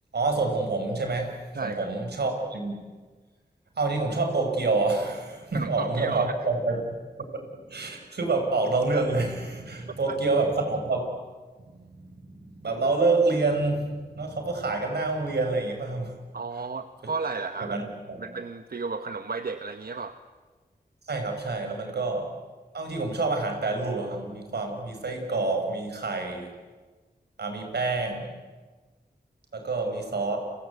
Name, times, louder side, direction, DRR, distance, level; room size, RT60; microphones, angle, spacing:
voice 1, 0.1-2.8 3.8-7.0 7.7-11.1 11.7-16.2 17.6-18.3 21.1-22.3 22.7-26.5 27.4-28.4 29.5-30.4, right 3 dB, 90° right, 4 dB, 5.2 m, -27 dB
voice 2, 1.5-1.9 5.5-6.3 10.1-10.2 16.3-17.8 18.2-20.2, right 4 dB, 65° right, 9 dB, 1.2 m, -33 dB
30.0 x 23.5 x 8.2 m, 1.3 s
cardioid pair, 50°, 17 cm